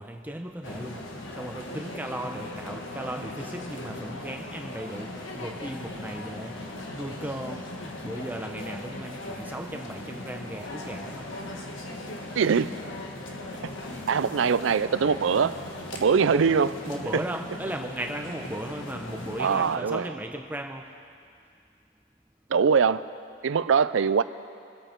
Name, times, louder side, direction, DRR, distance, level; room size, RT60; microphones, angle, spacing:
voice 1, 0.0-11.3 16.3-16.4 16.9-20.9, right 1 dB, 10° right, 3 dB, 0.8 m, -36 dB
sound 1, 0.6-19.8, left 1 dB, 80° left, 1.3 m, -39 dB
voice 2, 12.4-12.7 13.6-13.7 14.1-15.6 15.9-16.7 17.1-17.2 19.4-20.1 22.5-23.0 23.4-24.2, right 6 dB, 80° right, 15 dB, 0.4 m, -22 dB
23.0 x 8.2 x 4.5 m, 2.4 s
head